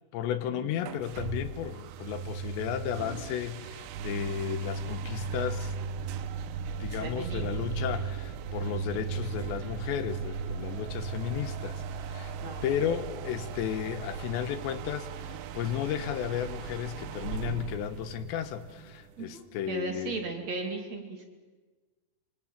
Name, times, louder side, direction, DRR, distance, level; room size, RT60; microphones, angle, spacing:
voice 1, 0.1-5.7 6.8-12.3 12.6-20.3, left 10 dB, 85° left, 12 dB, 3.4 m, -34 dB
sound 1, 0.8-19.3, right 5 dB, 85° right, 3.4 m, -37 dB
voice 2, 6.8-7.5 12.4-12.6 19.2-21.2, right 3 dB, 45° right, 3 dB, 3.3 m, -37 dB
26.0 x 25.0 x 7.5 m, 1.4 s
omnidirectional pair, 5.0 m